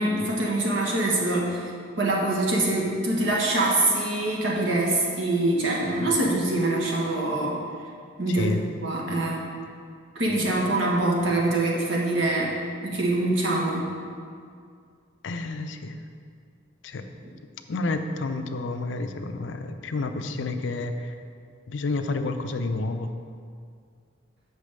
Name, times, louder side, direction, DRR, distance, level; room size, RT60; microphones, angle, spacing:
voice 1, 0.0-1.7 2.0-7.6 8.2-9.5 10.1-12.5 12.8-13.8, right 2 dB, 70° right, -3 dB, 1.5 m, -24 dB
voice 2, 8.3-8.6 10.3-10.4 15.2-15.9 16.8-17.1 17.7-21.1 21.7-23.1, left 2 dB, 65° left, 7 dB, 0.5 m, -30 dB
6.4 x 5.1 x 6.5 m, 2.2 s
head